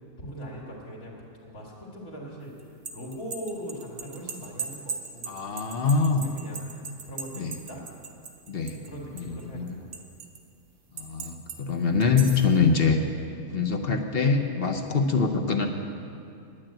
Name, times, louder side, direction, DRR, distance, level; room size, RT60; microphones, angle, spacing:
voice 1, 0.2-1.2 1.4-2.6 2.9-5.4 5.8-6.7 7.0-7.8 8.7-9.9, equal, 65° left, -6 dB, 2.6 m, -40 dB
sound 1, 2.6-8.9 9.2-10.4 11.0-11.6 12.0-12.5, right 5 dB, 50° right, 1.3 m, -38 dB
voice 2, 5.3-6.3 7.4-7.6 8.5-8.8 9.1-9.8 10.9-13.0 13.5-15.7, left 4 dB, 45° left, 5 dB, 1.0 m, -24 dB
10.5 x 9.8 x 8.8 m, 2.5 s
omnidirectional pair, 1.6 m